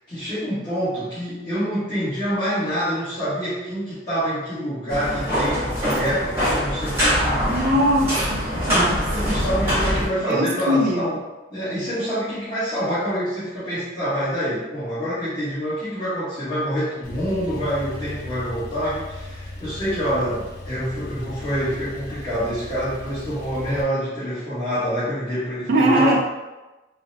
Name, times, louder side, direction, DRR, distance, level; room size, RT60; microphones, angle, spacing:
voice 1, 0.1-7.7 8.5-11.2 11.5-26.2, equal, 25° left, -16 dB, 1.1 m, -26 dB
sound 1, 4.9-10.1, equal, 15° right, 1.0 m, -23 dB
voice 2, 7.5-9.0 10.3-11.1 25.7-26.2, equal, 55° right, -1 dB, 0.4 m, -20 dB
Male speech man speaking / Car / Idling, 17.0-23.8, left 1 dB, 50° left, 0.5 m, -37 dB
3.7 x 2.0 x 2.6 m, 1.1 s
head